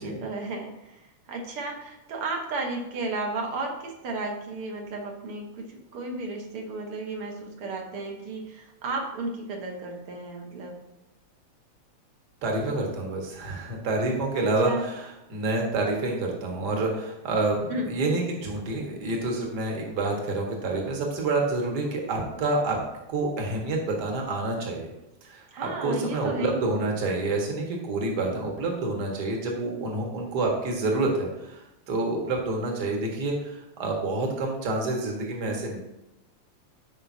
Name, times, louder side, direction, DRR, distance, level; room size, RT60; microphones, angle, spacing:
voice 1, 0.0-10.8 14.4-14.9 17.7-17.9 25.5-26.6, right 2 dB, 55° right, 2 dB, 1.8 m, -33 dB
voice 2, 12.4-22.8 23.1-24.9 25.2-35.8, right 2 dB, 40° right, 0 dB, 1.8 m, -28 dB
14.5 x 5.4 x 2.8 m, 0.92 s
omnidirectional pair, 3.4 m